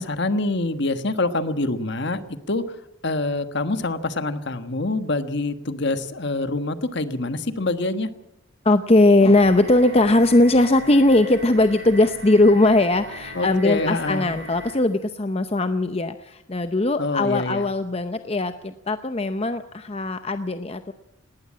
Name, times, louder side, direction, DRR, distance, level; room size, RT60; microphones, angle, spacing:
voice 1, 0.0-2.2 2.5-2.6 3.0-8.1 13.3-14.2 17.0-17.6, left 2 dB, 55° left, 10 dB, 1.4 m, -25 dB
voice 2, 8.6-20.9, left 2 dB, 30° left, 9 dB, 0.7 m, -19 dB
sound 1, 9.3-14.9, right 1 dB, 60° right, 3.3 m, -40 dB
19.0 x 18.5 x 7.5 m, 0.88 s
head